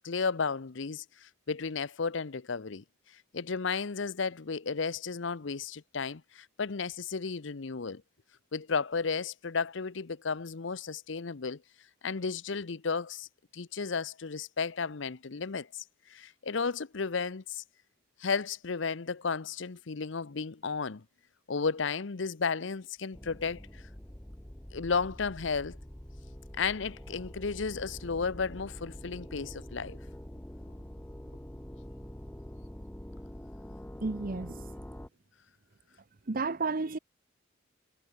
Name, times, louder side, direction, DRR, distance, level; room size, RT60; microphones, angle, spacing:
voice 1, 0.0-2.8 3.3-8.0 8.5-11.6 12.0-13.3 13.5-15.8 16.1-17.6 18.2-21.0 21.5-23.8 24.7-25.8 26.6-30.0, left 5 dB, 70° left, 0.8 m, -33 dB
sound 1, 23.1-35.1, equal, 10° left, 0.9 m, -45 dB
voice 2, 34.0-34.6 36.3-37.0, right 3 dB, 45° right, 0.8 m, -32 dB
head